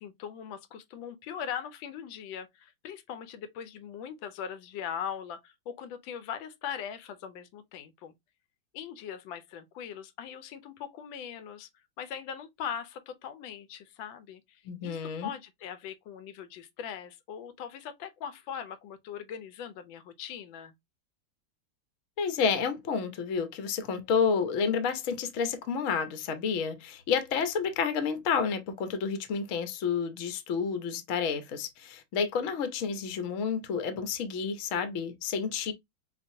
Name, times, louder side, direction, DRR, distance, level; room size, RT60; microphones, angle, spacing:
voice 1, 0.0-8.1 8.7-11.7 12.0-20.7, left 8 dB, 85° left, 1.4 m, -40 dB
voice 2, 14.6-15.3 22.2-35.7, left 6 dB, 60° left, 0.9 m, -30 dB
5.1 x 2.5 x 2.6 m
omnidirectional pair, 2.1 m